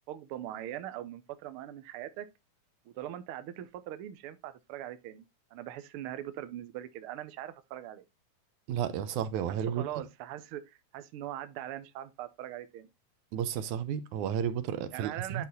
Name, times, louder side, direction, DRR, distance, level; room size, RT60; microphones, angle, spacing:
voice 1, 0.1-2.3 2.9-5.3 5.5-8.0 9.5-12.9 14.9-15.4, right 12 dB, 70° right, 1.3 m, -41 dB
voice 2, 8.7-9.8 13.3-15.5, right 9 dB, 90° right, 2.3 m, -32 dB
9.9 x 4.1 x 4.0 m
omnidirectional pair, 3.4 m